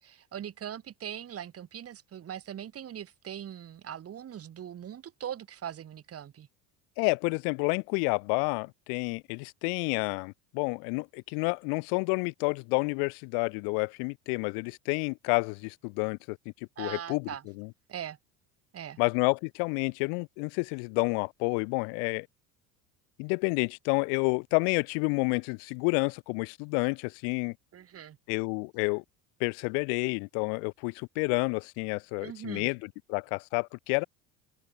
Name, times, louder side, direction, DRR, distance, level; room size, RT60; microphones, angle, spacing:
voice 1, 0.0-6.5 16.8-17.4 17.9-18.2 18.7-19.0 27.7-28.2 32.2-32.7, right 10 dB, 40° right, 4.4 m, -41 dB
voice 2, 7.0-16.4 16.8-17.3 17.6-17.7 19.0-22.3 23.2-27.5 28.3-29.0 29.4-34.0, left 40 dB or more, 75° left, 0.5 m, -29 dB
supercardioid pair, 115°, 37 cm